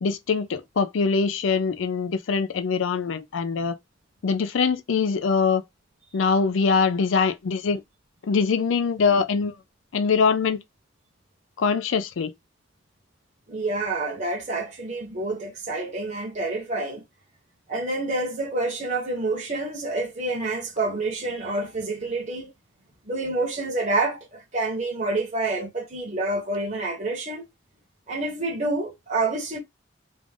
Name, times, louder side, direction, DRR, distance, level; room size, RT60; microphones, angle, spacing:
voice 1, 0.0-3.7 4.2-5.6 6.1-7.8 8.2-9.5 9.9-10.6 11.6-12.3, left 5 dB, 90° left, 0.4 m, -23 dB
voice 2, 13.5-17.0 17.7-22.5 23.1-27.4 28.1-29.6, right 2 dB, 40° right, 1.0 m, -28 dB
3.5 x 2.4 x 3.6 m
head